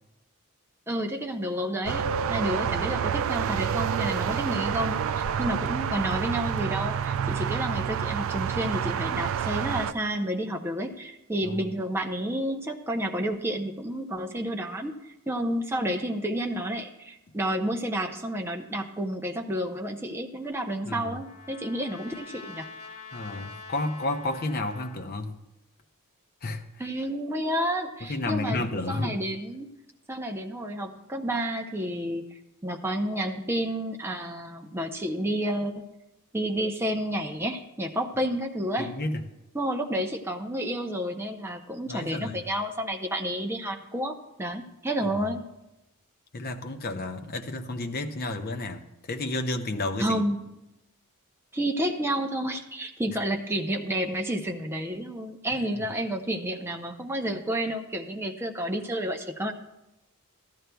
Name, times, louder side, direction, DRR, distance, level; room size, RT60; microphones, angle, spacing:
voice 1, 0.9-22.7 26.8-29.7 30.1-32.2 32.6-35.7 36.3-38.9 39.5-45.4 50.0-50.5 51.5-59.5, right 1 dB, 10° right, 3 dB, 0.6 m, -30 dB
sound 1, 1.8-9.9, right 8 dB, 60° right, 0.3 m, -28 dB
Trumpet, 20.4-25.1, left 4 dB, 85° left, 1.2 m, -46 dB
voice 2, 20.9-21.2 23.1-25.4 26.4-26.6 28.0-29.2 38.8-39.2 41.9-42.4 45.2-45.3 46.3-50.2 55.5-55.7, left 2 dB, 45° left, 5 dB, 0.7 m, -31 dB
14.0 x 12.5 x 2.3 m, 0.96 s
head